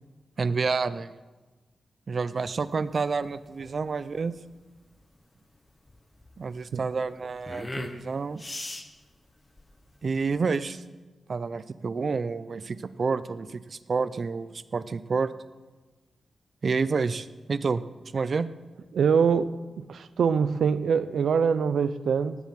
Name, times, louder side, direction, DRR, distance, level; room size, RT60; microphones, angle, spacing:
voice 1, 0.4-1.1 2.1-4.3 6.4-8.4 10.0-10.8 11.3-15.3 16.6-17.8 18.1-18.5, right 4 dB, 50° right, 15 dB, 0.6 m, -29 dB
sound 1, 2.4-10.4, left 2 dB, 20° left, 1.1 m, -42 dB
voice 2, 18.9-19.5 19.9-22.4, right 6 dB, 90° right, 14 dB, 0.7 m, -23 dB
18.0 x 7.4 x 7.6 m, 1.2 s
wide cardioid pair, 120°, 0 cm